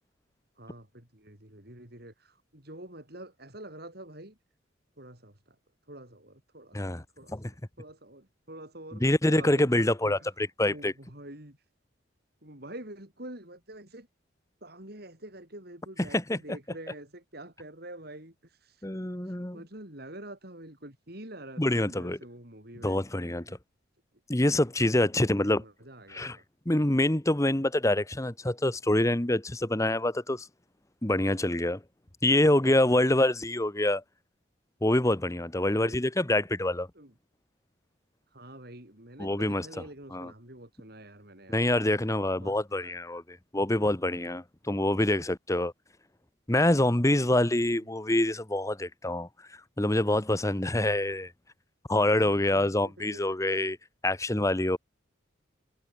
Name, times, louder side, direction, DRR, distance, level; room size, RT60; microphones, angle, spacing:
voice 1, 0.6-4.4 5.0-5.6 5.9-6.9 7.2-10.4 10.6-11.7 12.4-14.1 14.6-18.9 19.2-23.6 25.3-26.4 35.8-36.0 36.9-37.1 38.3-41.9 42.4-43.0 47.6-47.9 52.2-53.3, right 1 dB, 50° right, 5.3 m, -47 dB
voice 2, 9.0-10.2 10.6-10.9 16.1-16.4 18.8-19.6 21.6-22.2 22.8-23.5 24.3-25.6 26.1-26.4 26.7-30.5 31.0-31.8 32.2-34.0 34.8-36.9 39.2-39.7 40.1-40.3 41.5-45.7 46.5-49.3 49.8-51.3 51.9-53.8 54.0-54.8, left 1 dB, 15° left, 1.1 m, -26 dB
head